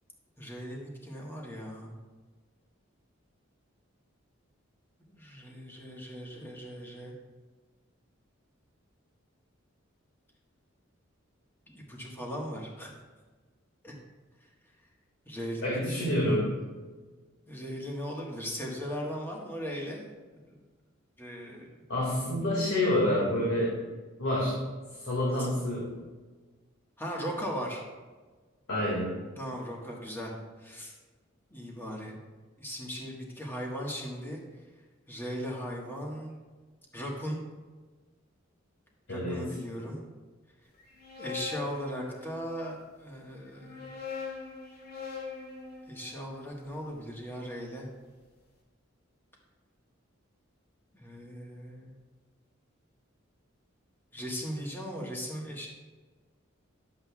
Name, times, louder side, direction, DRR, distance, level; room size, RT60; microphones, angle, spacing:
voice 1, 0.4-1.9 5.0-7.1 11.7-12.9 13.8-13.9 15.2-15.7 16.0-16.2 17.5-20.1 20.5-20.6 21.2-21.7 25.4-25.5 27.0-27.8 29.4-30.3 30.6-30.9 31.5-32.2 32.6-34.4 35.1-36.3 36.9-37.4 39.1-40.0 41.2-44.0 45.9-47.9 50.9-51.9 54.1-55.7, equal, 10° left, -2 dB, 1.4 m, -38 dB
voice 2, 15.6-16.5 21.9-23.7 24.2-24.6 25.0-26.0 28.7-29.1 39.1-39.4, left 1 dB, 80° left, -5 dB, 2.1 m, -28 dB
sound 1, 40.8-42.7 43.5-47.6, left 5 dB, 55° left, 1.6 m, -43 dB
11.0 x 7.7 x 2.3 m, 1.3 s
head